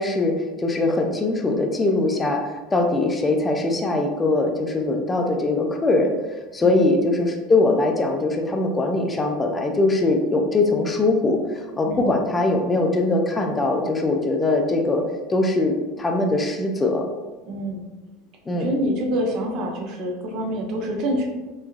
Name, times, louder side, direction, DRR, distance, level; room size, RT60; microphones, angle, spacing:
voice 1, 0.0-6.1 6.5-15.0 15.3-17.0 18.5-18.7, left 2 dB, 20° left, 3 dB, 0.4 m, -21 dB
voice 2, 11.9-12.2 17.5-17.9 18.5-21.3, equal, 55° right, 1 dB, 0.6 m, -26 dB
3.1 x 2.2 x 2.4 m, 1.2 s
hypercardioid pair, 85°, 0 cm